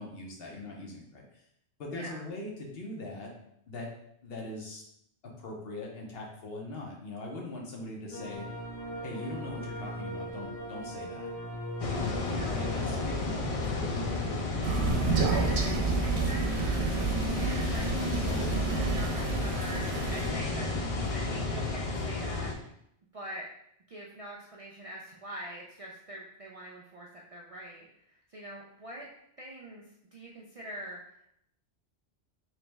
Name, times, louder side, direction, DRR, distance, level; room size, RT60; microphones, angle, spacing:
voice 1, 0.0-1.4 1.8-3.3 3.7-3.9 4.2-4.8 5.2-8.5 9.0-11.3 12.1-14.5, left 2 dB, 65° left, -1 dB, 1.0 m, -41 dB
voice 2, 1.9-2.3 12.3-12.7 15.1-16.7 17.0-22.5 23.1-23.5 23.9-29.1 29.4-29.9 30.1-31.2, right 1 dB, 55° right, -3 dB, 0.4 m, -44 dB
sound 1, 8.1-13.3, equal, 15° left, 0.8 m, -39 dB
sound 2, 11.8-22.5, left 3 dB, 45° left, 0.5 m, -33 dB
Crow, 14.6-20.3, right 4 dB, 75° right, 0.9 m, -29 dB
3.2 x 3.0 x 3.3 m, 0.72 s
omnidirectional pair, 1.1 m